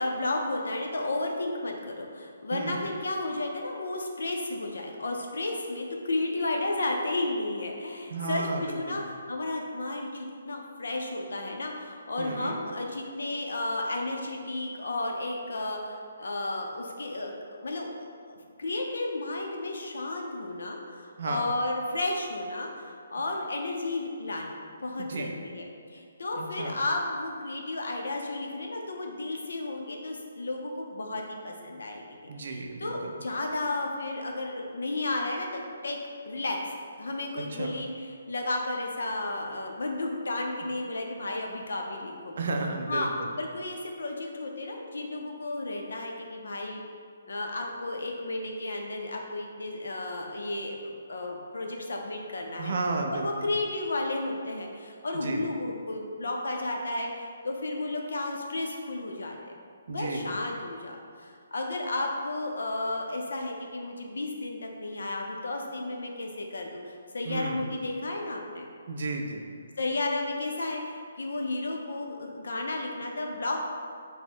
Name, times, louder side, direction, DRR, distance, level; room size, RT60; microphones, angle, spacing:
voice 1, 0.0-17.3 17.6-17.9 18.3-32.1 32.4-36.0 36.3-36.6 37.0-42.4 42.9-43.1 43.4-46.8 47.3-52.7 53.1-59.6 59.9-68.7 69.8-73.6, left 2 dB, 75° left, 1 dB, 0.5 m, -33 dB
voice 2, 8.1-9.0 12.2-12.6 21.2-21.5 25.0-25.3 26.4-26.8 32.3-33.1 37.4-37.7 42.4-43.3 52.6-53.5 55.1-55.5 59.9-60.4 67.2-67.7 68.9-69.4, right 3 dB, 40° right, 2 dB, 0.3 m, -33 dB
3.4 x 2.1 x 4.2 m, 2.2 s
hypercardioid pair, 180°, 0 cm